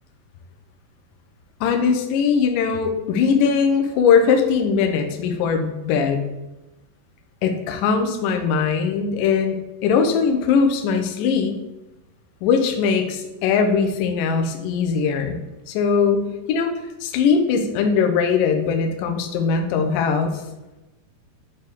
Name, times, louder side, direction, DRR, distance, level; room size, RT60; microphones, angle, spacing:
voice 1, 1.6-6.3 7.4-11.6 12.4-15.4 15.7-16.7 17.0-20.4, left 6 dB, 85° left, 4 dB, 1.9 m, -20 dB
6.7 x 4.4 x 3.5 m, 1.0 s
omnidirectional pair, 4.8 m